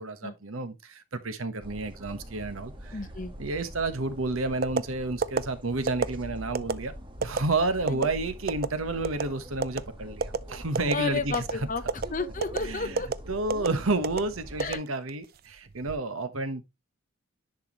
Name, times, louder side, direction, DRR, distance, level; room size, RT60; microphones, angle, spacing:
voice 1, 0.0-3.0 3.4-6.9 7.2-11.7 12.6-13.0 13.3-16.6, right 2 dB, 85° right, 1.2 m, -30 dB
sound 1, 1.6-14.7, equal, 25° right, 1.5 m, -43 dB
voice 2, 2.9-3.3 7.9-8.0 10.9-11.8 12.1-13.1 14.6-14.8, left 4 dB, 40° left, 0.9 m, -32 dB
sound 2, 4.6-4.8 5.2-5.4 5.9-6.1 6.5-6.7 7.2-7.4 7.9-8.1 8.5-8.7 9.0-9.3 9.6-9.8 10.2-10.4 10.7-11.0 11.3-11.5 11.9-12.1 12.4-12.6 13.0-13.1 13.5-13.7 14.0-14.2 14.6-15.2 15.7-16.0, right 5 dB, 45° right, 0.4 m, -27 dB
10.5 x 4.7 x 3.0 m
head